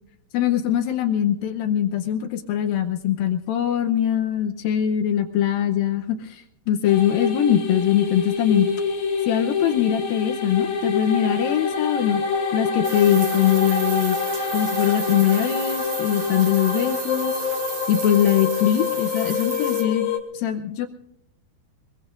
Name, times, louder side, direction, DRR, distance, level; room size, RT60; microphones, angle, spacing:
voice 1, 0.3-8.7 9.3-12.2 12.5-14.2 14.5-17.4 17.9-20.1 20.3-20.9, left 10 dB, 75° left, 7 dB, 2.2 m, -22 dB
sound 1, 6.8-20.2, left 5 dB, 50° left, 3.2 m, -26 dB
sound 2, 12.8-19.8, right 8 dB, 80° right, 1.3 m, -34 dB
24.5 x 21.5 x 2.5 m, 0.77 s
omnidirectional pair, 4.9 m